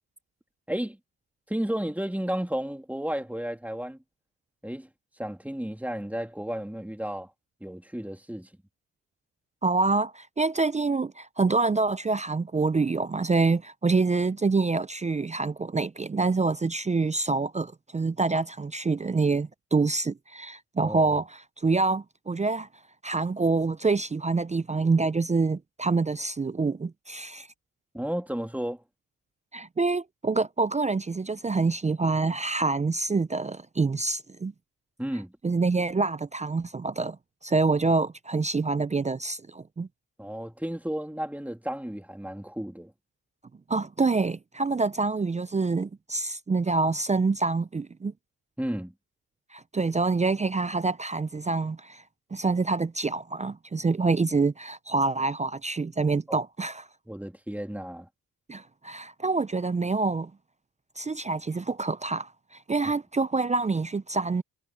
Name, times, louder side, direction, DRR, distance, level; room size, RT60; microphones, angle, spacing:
voice 1, 0.7-1.0 1.5-4.0 4.6-4.9 5.2-7.3 7.6-8.5 20.8-21.2 27.9-28.8 35.0-35.3 40.2-42.9 48.6-48.9 56.3-56.4 57.1-58.1, equal, 5° right, 3.0 m, -33 dB
voice 2, 9.6-22.7 23.0-27.5 29.5-34.5 35.4-37.2 37.4-39.9 43.7-48.1 49.5-52.0 52.3-56.9 58.5-60.3 61.0-62.3 62.7-64.4, right 3 dB, 20° right, 0.5 m, -26 dB
cardioid pair, 75°, 37 cm